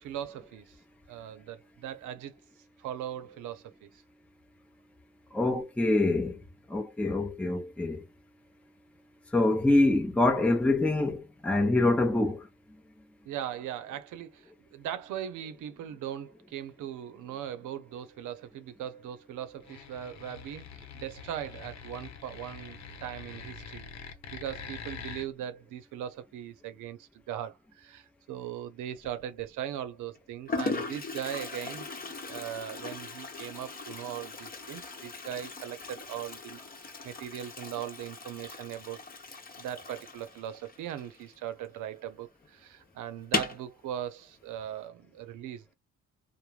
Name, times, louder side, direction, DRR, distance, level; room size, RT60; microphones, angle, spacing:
voice 1, 0.0-0.8 1.1-2.3 2.8-3.9 13.3-23.9 24.3-31.9 32.2-39.0 39.6-45.7, right 10 dB, 85° right, 0.6 m, -39 dB
voice 2, 5.3-6.4 6.7-8.0 9.3-12.5, left 2 dB, 5° left, 0.6 m, -25 dB
sound 1, 19.6-25.3, left 6 dB, 60° left, 0.8 m, -45 dB
Toilet flush, 29.0-29.4 30.2-30.3 30.5-41.8 42.0-42.1 42.4-42.5 43.2-43.7, left 3 dB, 30° left, 0.9 m, -38 dB
3.1 x 2.1 x 2.3 m
cardioid pair, 90°, 30 cm